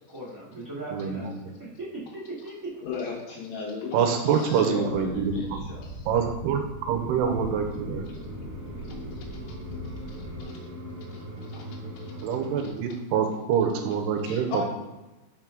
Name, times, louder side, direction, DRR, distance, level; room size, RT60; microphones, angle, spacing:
voice 1, 0.1-1.3 1.6-2.5, right 2 dB, 40° right, -8 dB, 1.2 m, -38 dB
voice 2, 0.9-1.4 3.9-5.6 6.1-8.0 12.2-14.5, right 7 dB, 85° right, 4 dB, 2.7 m, -26 dB
voice 3, 2.8-3.9 4.2-5.9, left 4 dB, 70° left, -4 dB, 1.7 m, -35 dB
voice 4, 4.2-4.6 5.8-6.1 8.8-9.6 9.8-10.6 11.1-12.3 12.6-12.7 14.2-14.6, left 5 dB, 85° left, -2 dB, 2.9 m, -42 dB
sound 1, 4.9-10.4, equal, 40° left, 1.2 m, -40 dB
sound 2, 6.8-12.7, equal, 70° right, 2.0 m, -40 dB
5.8 x 4.4 x 3.7 m, 1.1 s
omnidirectional pair, 4.8 m